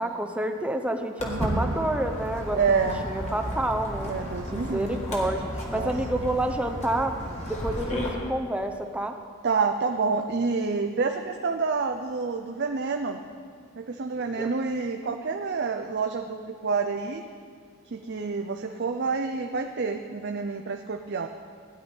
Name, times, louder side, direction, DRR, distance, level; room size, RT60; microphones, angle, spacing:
voice 1, 0.0-2.6 3.0-4.1 4.5-5.4 5.7-7.1 7.5-9.1 14.4-14.5, right 1 dB, 5° right, 5 dB, 0.6 m, -28 dB
Walk footsteps, 1.2-8.1, equal, 30° left, 1.8 m, -33 dB
voice 2, 1.3-1.8 2.5-3.1 4.1-5.0 5.7-5.9 9.4-13.2 13.8-17.3 17.8-21.3, right 4 dB, 50° right, 5 dB, 0.5 m, -28 dB
16.5 x 10.5 x 4.4 m, 2.1 s
head